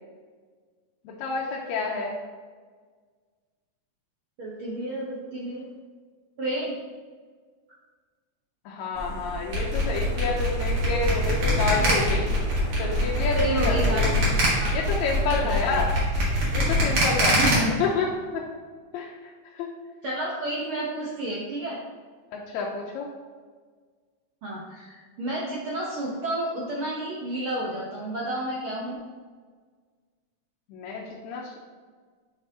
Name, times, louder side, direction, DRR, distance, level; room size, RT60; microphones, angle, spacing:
voice 1, 1.1-2.2 8.7-12.3 12.8-14.1 14.7-15.9 16.5-17.4 17.8-18.1 18.3-18.4 18.9-19.7 22.3-23.1 30.7-31.6, left 4 dB, 80° left, -2 dB, 1.8 m, -29 dB
voice 2, 4.4-5.7 6.4-6.7 13.3-14.3 14.6-14.7 15.4-15.9 17.4-17.7 20.0-21.8 24.4-29.0, right 1 dB, 80° right, -5 dB, 1.1 m, -30 dB
sound 1, 8.9-15.7, right 1 dB, 10° left, 0.5 m, -32 dB
sound 2, 9.5-17.5, equal, 65° right, 2.8 m, -24 dB
6.2 x 5.7 x 2.7 m, 1.5 s
omnidirectional pair, 3.5 m